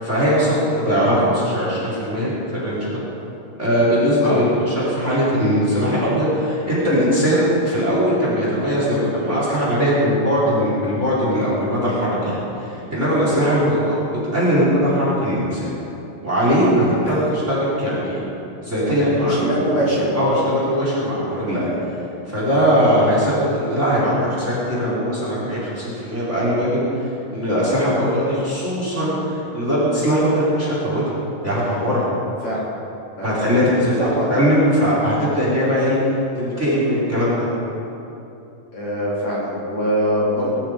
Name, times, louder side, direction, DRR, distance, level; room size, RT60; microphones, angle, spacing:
voice 1, 0.0-3.0 3.6-14.0 14.3-15.7 16.2-18.2 18.6-19.5 20.1-21.7 22.3-26.8 27.3-31.0 31.4-32.1 33.2-34.0 34.3-36.0 36.4-37.5, equal, 15° right, -7 dB, 4.5 m, -20 dB
voice 2, 19.3-20.3 32.4-32.6 33.2-33.4 34.0-34.3 38.7-40.6, equal, 45° left, -8 dB, 4.5 m, -23 dB
21.5 x 13.0 x 5.1 m, 2.8 s
omnidirectional pair, 4.7 m